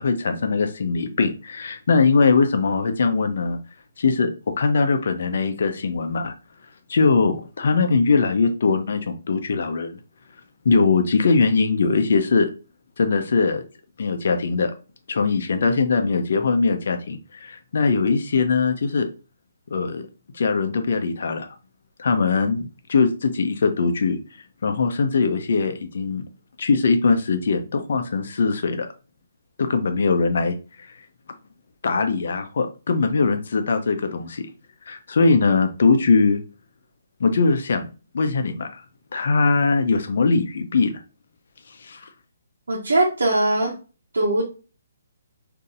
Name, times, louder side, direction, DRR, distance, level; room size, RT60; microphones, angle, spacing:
voice 1, 0.0-3.6 4.0-6.3 6.9-10.0 10.6-12.5 13.0-13.6 14.0-14.7 15.1-19.1 19.7-20.1 20.3-21.5 22.0-24.2 24.6-26.2 26.6-28.9 29.6-30.6 31.8-34.5 34.9-36.4 37.2-37.9 38.1-38.8 39.1-41.0 41.8-42.1, left 4 dB, 65° left, 7 dB, 0.6 m, -21 dB
voice 2, 42.7-43.7 44.1-44.4, right 2 dB, 85° right, -2 dB, 1.0 m, -20 dB
3.9 x 2.8 x 2.4 m, 0.34 s
hypercardioid pair, 145°, 0 cm